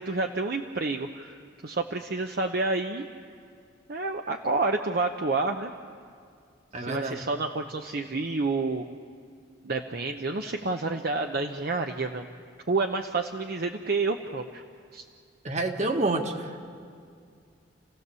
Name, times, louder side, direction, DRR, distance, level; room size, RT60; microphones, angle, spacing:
voice 1, 0.0-3.1 3.9-5.7 6.8-8.9 9.6-12.3 12.7-14.6 14.9-15.0, right 3 dB, 55° right, 4 dB, 0.8 m, -29 dB
voice 2, 6.7-7.2 15.4-16.5, right 2 dB, 40° right, 4 dB, 1.7 m, -28 dB
30.0 x 16.5 x 6.9 m, 2.2 s
head